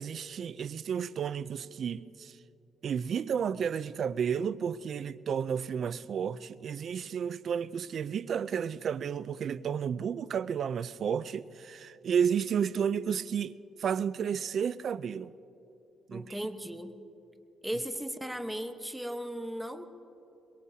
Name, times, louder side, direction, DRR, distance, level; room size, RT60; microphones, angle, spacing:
voice 1, 0.0-2.4 2.8-13.5 13.8-15.3 16.1-16.4, right 7 dB, 60° right, 0.4 m, -32 dB
voice 2, 16.1-17.0 17.6-19.9, equal, 5° right, 1.1 m, -36 dB
23.5 x 22.0 x 2.8 m
cardioid pair, 90°, 0 cm